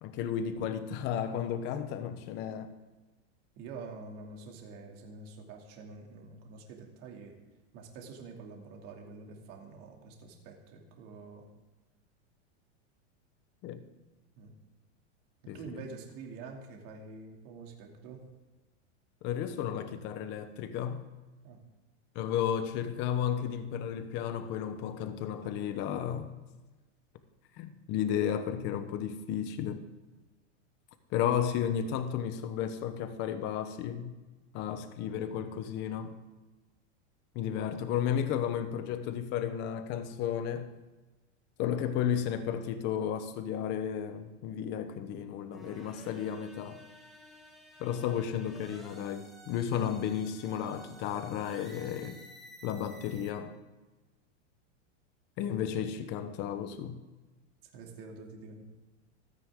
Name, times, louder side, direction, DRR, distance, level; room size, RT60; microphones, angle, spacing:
voice 1, 0.0-2.7 13.6-13.8 15.5-15.8 19.2-21.0 22.1-26.3 27.6-29.8 31.1-34.1 34.5-36.2 37.3-40.7 41.6-46.8 47.8-52.2 52.6-53.6 55.4-57.0, left 9 dB, 30° left, 10 dB, 1.0 m, -33 dB
voice 2, 3.6-7.3 7.7-11.5 14.4-14.5 15.5-18.2 21.4-21.6 57.6-58.6, right 4 dB, 40° right, 1 dB, 2.7 m, -47 dB
sound 1, 45.5-53.3, right 1 dB, ahead, 1.8 m, -53 dB
27.0 x 9.7 x 3.7 m, 1.2 s
supercardioid pair, 170°, 35 cm